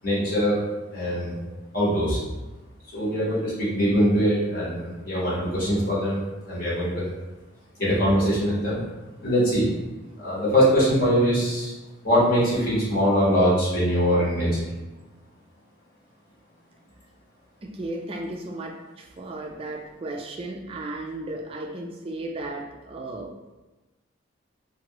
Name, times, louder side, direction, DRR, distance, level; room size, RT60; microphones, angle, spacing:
voice 1, 0.0-0.6 0.9-1.4 1.7-2.2 2.9-7.1 7.8-8.8 9.2-9.7 10.2-11.7 12.0-14.7, equal, 45° left, -8 dB, 1.2 m, -22 dB
voice 2, 17.6-23.3, right 2 dB, 25° right, 1 dB, 0.3 m, -35 dB
2.9 x 2.5 x 2.8 m, 1.1 s
head